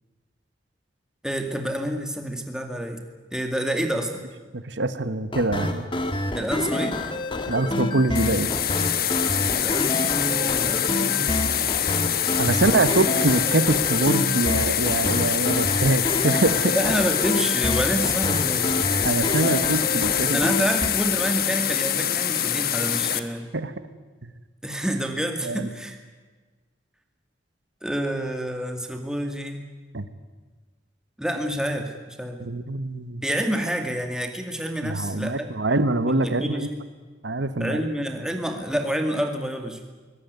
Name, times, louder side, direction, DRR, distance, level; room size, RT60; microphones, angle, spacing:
voice 1, 1.2-3.0 3.3-4.2 6.3-7.0 9.6-11.4 12.6-13.3 16.7-18.7 20.3-23.5 24.6-26.0 27.8-29.7 31.2-32.4 33.2-35.5 36.0-36.8 37.6-39.8, equal, 5° right, 4 dB, 2.2 m, -28 dB
voice 2, 4.5-5.9 7.5-8.5 12.4-16.8 19.0-20.7 23.1-23.2 23.5-23.7 24.2-24.3 25.4-25.7 29.9-30.0 32.4-33.2 34.8-36.7 37.2-37.8, right 2 dB, 85° right, 12 dB, 1.3 m, -24 dB
sound 1, 5.3-20.9, left 1 dB, 30° left, 1.6 m, -28 dB
sound 2, 8.1-23.2, left 10 dB, 55° left, 1.2 m, -25 dB
22.5 x 19.0 x 9.5 m, 1.3 s
head